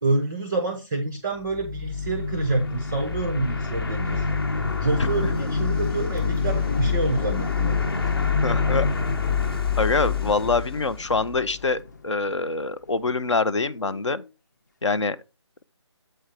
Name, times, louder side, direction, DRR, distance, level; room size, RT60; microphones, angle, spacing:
voice 1, 0.0-4.4 4.8-7.9 10.2-10.3, right 3 dB, 5° right, 0.4 m, -28 dB
sound 1, 1.4-11.6, left 5 dB, 55° left, 1.2 m, -26 dB
sound 2, 4.5-13.2 13.5-14.3, left 3 dB, 35° left, 0.6 m, -38 dB
voice 2, 8.4-8.9 9.8-14.2 14.8-15.2, left 3 dB, 75° left, 0.8 m, -25 dB
7.9 x 4.4 x 4.9 m
figure-of-eight pair, 170°, 15 cm